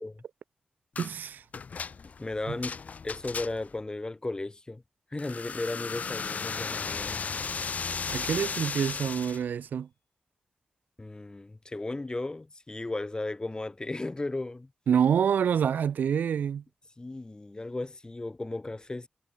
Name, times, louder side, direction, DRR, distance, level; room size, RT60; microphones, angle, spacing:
sound 1, 1.0-1.2 1.5-3.8 5.2-9.4, left 5 dB, 55° left, 0.3 m, -35 dB
voice 1, 1.0-1.4 2.5-2.6 8.1-9.9 14.9-16.6, right 8 dB, 85° right, 0.4 m, -27 dB
voice 2, 2.2-4.8 5.1-7.2 11.0-14.7 17.0-19.1, left 2 dB, 25° left, 1.8 m, -35 dB
Hammer / Chink clink, 9.1-9.9, left 6 dB, 80° left, 4.6 m, -59 dB
cardioid pair, 60°, 3 cm